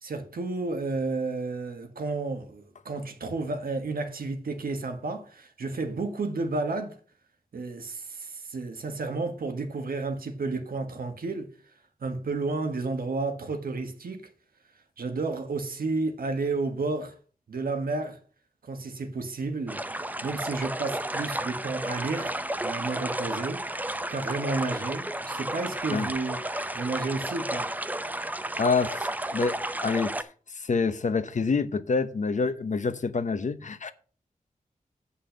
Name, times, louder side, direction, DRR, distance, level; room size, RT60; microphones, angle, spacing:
voice 1, 0.0-7.0 7.5-11.5 12.0-14.3 15.0-17.2 17.5-18.2 18.6-19.8 20.2-27.7, right 3 dB, 85° right, 1.5 m, -32 dB
sound 1, 19.7-30.2, right 1 dB, 10° right, 0.6 m, -32 dB
voice 2, 28.6-30.3 30.6-33.9, left 4 dB, 55° left, 0.8 m, -27 dB
8.7 x 5.6 x 6.4 m
wide cardioid pair, 120°, 15 cm